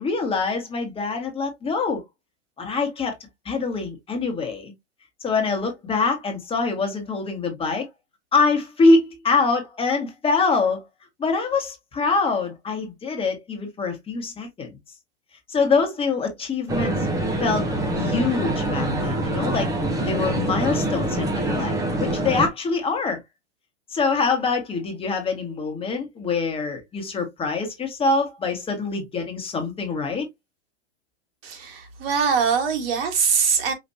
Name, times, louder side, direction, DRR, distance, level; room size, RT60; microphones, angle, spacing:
voice 1, 0.0-2.0 2.6-3.1 3.4-4.7 5.2-7.9 8.3-10.8 11.2-14.7 15.5-16.9 17.4-17.7 17.9-19.7 20.0-23.2 23.9-30.3, left 4 dB, 15° left, 1.5 m, -24 dB
sound 1, 16.7-22.5, right 1 dB, 10° right, 0.8 m, -25 dB
voice 2, 31.4-33.7, right 6 dB, 55° right, 1.7 m, -22 dB
5.2 x 2.9 x 2.7 m
hypercardioid pair, 125°, 35 cm